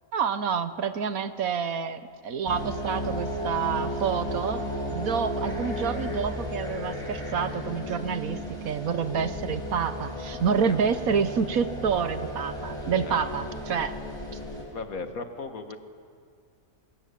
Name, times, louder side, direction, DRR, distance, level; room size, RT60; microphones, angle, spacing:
voice 1, 0.1-4.6 4.9-8.4 8.6-14.0, right 6 dB, 75° right, 11 dB, 1.4 m, -28 dB
sound 1, 2.4-14.6, equal, 20° left, 6.3 m, -34 dB
voice 2, 10.4-10.8 13.0-13.1 14.4-15.8, left 4 dB, 70° left, 7 dB, 2.1 m, -38 dB
27.0 x 21.0 x 8.5 m, 2.2 s
omnidirectional pair, 1.5 m